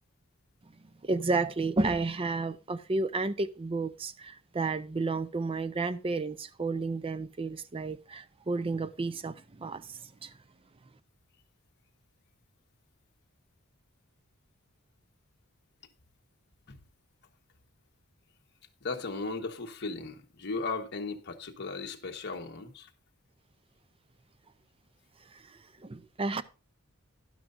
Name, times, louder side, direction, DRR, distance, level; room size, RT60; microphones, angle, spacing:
voice 1, 1.0-10.3 25.8-26.4, right 3 dB, 25° right, 0.5 m, -32 dB
voice 2, 18.8-22.9, left 3 dB, 50° left, 1.2 m, -36 dB
12.0 x 11.0 x 2.6 m
head